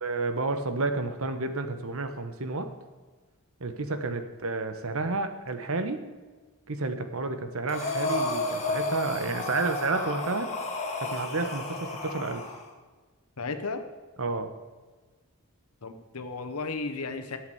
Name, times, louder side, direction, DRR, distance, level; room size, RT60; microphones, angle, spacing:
voice 1, 0.0-2.7 3.6-6.0 6.7-10.5 11.0-12.4 14.2-14.5, right 3 dB, 70° right, 8 dB, 1.2 m, -30 dB
Breathing, 7.7-12.6, left 2 dB, 30° left, 1.8 m, -32 dB
voice 2, 13.4-13.8 15.8-17.4, left 3 dB, 85° left, 8 dB, 1.2 m, -34 dB
8.9 x 8.2 x 8.0 m, 1.3 s
head